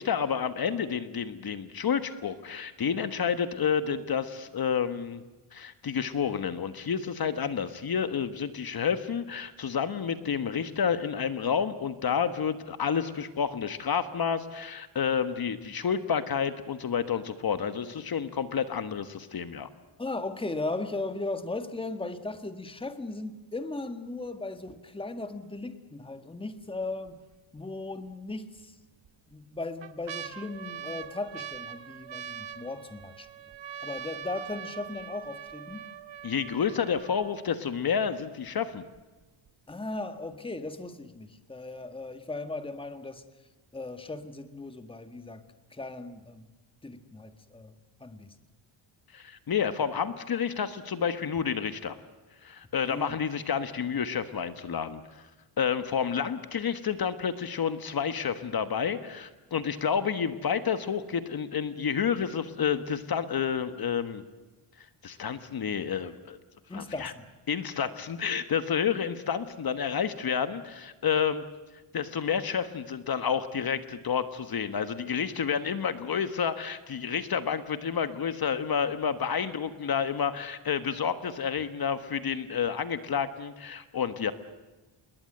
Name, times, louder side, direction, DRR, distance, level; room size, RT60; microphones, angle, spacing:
voice 1, 0.0-5.2 5.5-19.7 36.2-38.8 49.1-52.0 52.4-55.3 55.6-64.2 65.0-66.4 66.7-67.1 67.5-71.4 71.9-84.3, left 7 dB, 45° left, 11 dB, 1.4 m, -30 dB
voice 2, 20.0-27.2 27.5-28.8 29.3-33.3 33.8-35.8 39.7-43.2 43.7-45.4 45.7-46.5 46.8-48.4 52.9-53.2 66.7-67.2, left 2 dB, 10° left, 9 dB, 1.6 m, -37 dB
sound 1, 26.6-27.1 27.6-27.7 28.6-29.1 29.5-37.5 38.2-38.3 38.5-39.0 39.5-39.6, right 8 dB, 60° right, 1.4 m, -42 dB
28.0 x 21.5 x 7.9 m, 1.2 s
wide cardioid pair, 165°, 49 cm